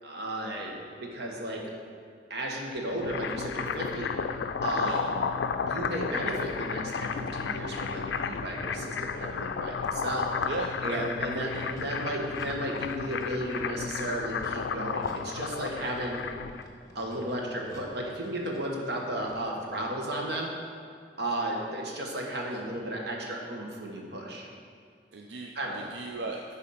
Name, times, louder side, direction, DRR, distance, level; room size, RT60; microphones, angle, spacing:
voice 1, 0.0-1.6 2.3-10.3 10.8-16.2 16.9-20.5 21.2-24.5 25.5-25.8, right 1 dB, 65° right, -1 dB, 1.3 m, -34 dB
sound 1, 2.8-16.6, left 6 dB, 75° left, 0.4 m, -33 dB
sound 2, 6.8-19.8, left 1 dB, 20° left, 1.2 m, -51 dB
voice 2, 10.5-11.1 11.5-11.6 25.1-26.5, right 3 dB, 85° right, 1 dB, 0.5 m, -37 dB
10.5 x 4.1 x 5.6 m, 2.3 s
head